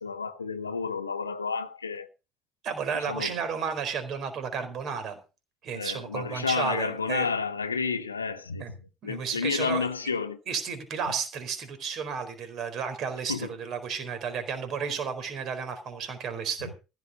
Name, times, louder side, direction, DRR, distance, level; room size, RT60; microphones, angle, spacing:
voice 1, 0.0-2.1 2.9-3.3 5.7-8.8 9.0-10.4 13.3-13.5 16.6-16.7, left 5 dB, 80° left, 0.9 m, -31 dB
voice 2, 2.6-5.2 5.6-7.3 8.6-8.7 9.0-9.9 10.5-16.7, right 6 dB, 45° right, 4.3 m, -32 dB
15.5 x 7.8 x 6.5 m
figure-of-eight pair, 60°, 0 cm